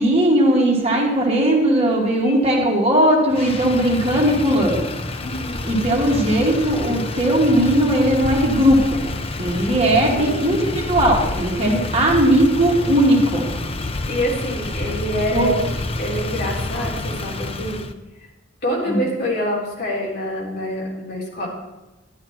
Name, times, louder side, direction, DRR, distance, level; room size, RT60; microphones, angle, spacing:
voice 1, 0.0-4.8 5.6-9.0 9.4-13.4 15.3-15.5 18.9-19.0, right 1 dB, 30° right, -2 dB, 2.4 m, -18 dB
Motor vehicle (road), 3.3-17.9, left 2 dB, 30° left, 0.6 m, -28 dB
voice 2, 5.2-5.7 10.1-10.6 14.1-15.6 16.0-17.8 18.6-21.5, equal, 55° left, -3 dB, 3.8 m, -26 dB
12.0 x 11.0 x 4.4 m, 1.1 s
head